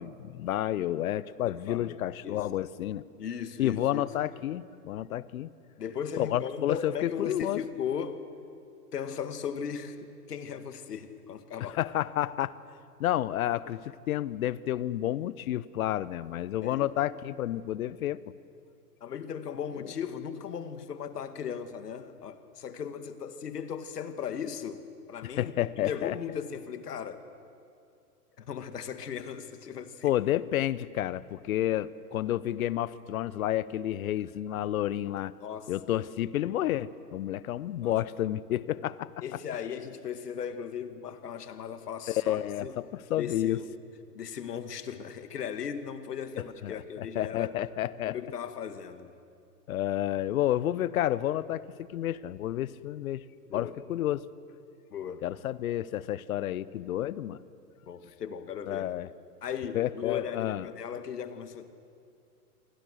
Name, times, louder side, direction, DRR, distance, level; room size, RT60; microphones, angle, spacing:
voice 1, 0.0-3.0 3.6-5.5 6.2-7.6 11.6-12.5 13.0-18.2 25.2-26.1 30.0-35.3 35.7-39.1 42.1-43.6 46.6-48.2 49.7-53.2 53.5-54.3 55.2-57.4 58.7-59.1 59.7-60.7, left 13 dB, 60° left, 19 dB, 1.0 m, -30 dB
voice 2, 1.4-2.5 3.2-4.0 5.8-8.3 8.9-11.8 16.6-16.9 19.0-27.3 28.4-30.1 35.4-35.7 37.8-37.9 38.5-38.6 39.2-42.8 43.2-43.6 44.1-47.5 48.1-49.1 53.5-53.7 54.9-55.3 57.8-58.9 59.4-61.8, left 7 dB, 80° left, 10 dB, 2.0 m, -37 dB
27.0 x 24.5 x 6.5 m, 2.4 s
hypercardioid pair, 125°, 47 cm